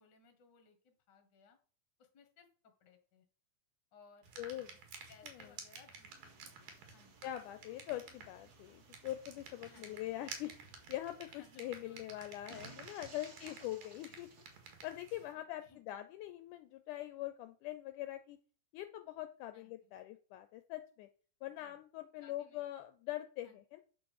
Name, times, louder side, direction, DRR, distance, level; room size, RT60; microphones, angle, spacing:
voice 1, 0.0-1.6 2.0-3.3 3.9-4.3 5.1-7.2 9.7-10.1 11.3-12.8 13.4-13.7 14.1-14.2 15.3-15.8 19.5-19.9 21.4-21.8 22.2-22.6 23.4-23.6, left 5 dB, 40° left, 6 dB, 1.8 m, -64 dB
sound 1, 4.2-15.3, right 5 dB, 85° right, 3.5 m, -53 dB
voice 2, 4.4-4.7 5.2-5.4 7.2-10.5 10.9-14.3 14.8-18.4 18.7-21.1 21.4-23.8, left 14 dB, 80° left, 10 dB, 2.0 m, -43 dB
sound 2, 6.1-15.1, right 4 dB, 40° right, 1.5 m, -61 dB
9.3 x 5.1 x 6.5 m, 0.41 s
omnidirectional pair, 3.8 m